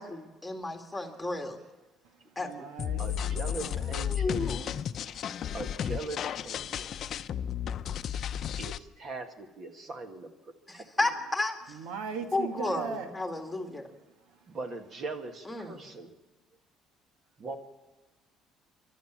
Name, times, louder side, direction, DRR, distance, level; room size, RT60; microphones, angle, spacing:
voice 1, 0.0-1.6 2.4-2.7 3.9-4.7 10.7-11.6 12.3-13.9 15.5-15.8, left 2 dB, 5° left, 3 dB, 2.2 m, -33 dB
voice 2, 2.0-3.9 11.7-13.1 13.9-14.6, right 6 dB, 90° right, 6 dB, 1.8 m, -40 dB
sound 1, 2.8-8.8, left 9 dB, 50° left, 0.6 m, -33 dB
voice 3, 3.0-4.4 5.5-6.9 8.6-10.3 10.7-10.8 14.5-16.1 17.4-17.6, right 3 dB, 40° right, 6 dB, 2.0 m, -40 dB
28.5 x 12.0 x 7.4 m, 1.2 s
cardioid pair, 120°, 0 cm